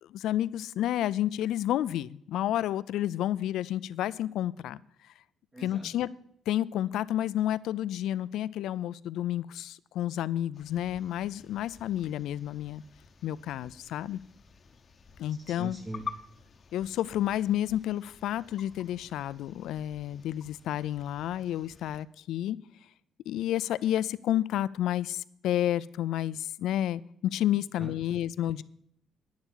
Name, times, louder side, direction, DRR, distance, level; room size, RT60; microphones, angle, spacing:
voice 1, 0.0-4.8 5.6-6.1 6.5-12.8 13.2-14.2 15.2-15.8 16.7-22.6 23.3-28.6, left 12 dB, 85° left, 17 dB, 0.4 m, -30 dB
voice 2, 5.5-5.9 15.3-16.1 27.8-27.9, right 2 dB, 25° right, 0 dB, 1.7 m, -41 dB
sound 1, 10.5-22.0, left 5 dB, 45° left, 0.9 m, -49 dB
10.5 x 7.3 x 8.6 m, 0.69 s
cardioid pair, 90°, 0 cm